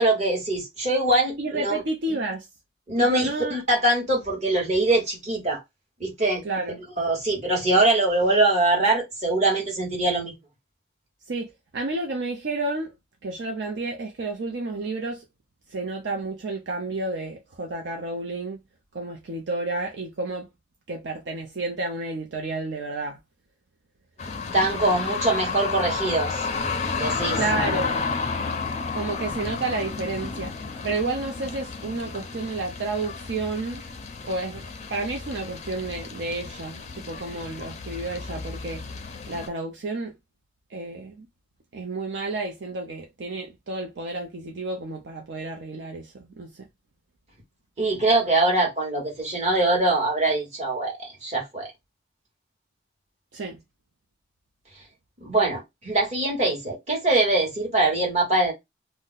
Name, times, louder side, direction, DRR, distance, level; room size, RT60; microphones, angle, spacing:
voice 1, 0.0-1.8 2.9-5.6 6.0-6.4 7.0-10.3 24.5-26.5 26.9-27.4 47.8-51.7 55.2-58.5, right 2 dB, 35° right, 1.3 m, -23 dB
voice 2, 1.4-2.5 3.0-3.6 6.4-6.8 11.3-12.9 13.2-15.2 15.7-18.6 18.9-20.5 20.9-23.2 27.4-28.0 28.9-30.5 30.8-33.8 34.2-34.6 34.9-38.8 39.3-40.1 40.7-41.3 41.7-46.7 53.3-53.6, right 2 dB, 65° right, 0.5 m, -31 dB
sound 1, 24.2-39.5, left 4 dB, 35° left, 0.4 m, -32 dB
2.6 x 2.0 x 3.8 m
head